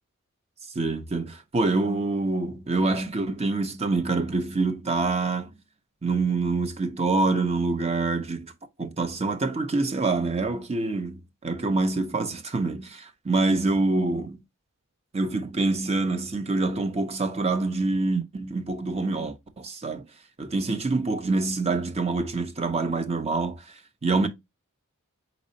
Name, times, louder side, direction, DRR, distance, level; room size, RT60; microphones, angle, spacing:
voice 1, 0.8-5.5 6.0-8.5 8.8-14.4 15.1-20.1 20.4-23.6 24.0-24.3, right 3 dB, 30° right, 0.6 m, -26 dB
4.1 x 4.1 x 2.7 m
head